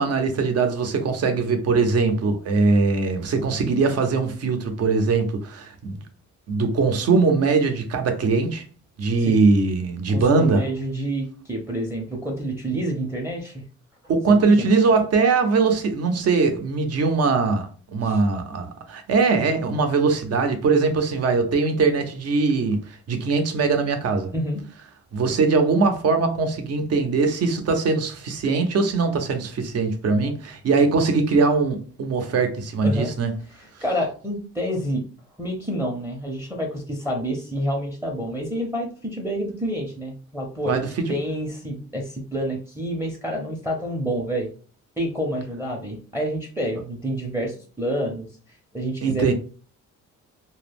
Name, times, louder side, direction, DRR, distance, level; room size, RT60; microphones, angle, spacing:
voice 1, 0.0-6.0 6.5-8.6 9.0-10.6 14.1-24.3 25.1-33.3 40.7-40.9 49.0-49.3, right 4 dB, 55° right, 0.6 m, -21 dB
voice 2, 10.1-13.6 14.3-14.7 18.0-18.2 24.3-24.6 30.1-30.4 32.8-33.1 33.8-35.0 35.4-44.5 45.0-48.3 48.7-49.3, equal, 10° right, 0.6 m, -28 dB
2.2 x 2.0 x 3.3 m
cardioid pair, 90°, 30 cm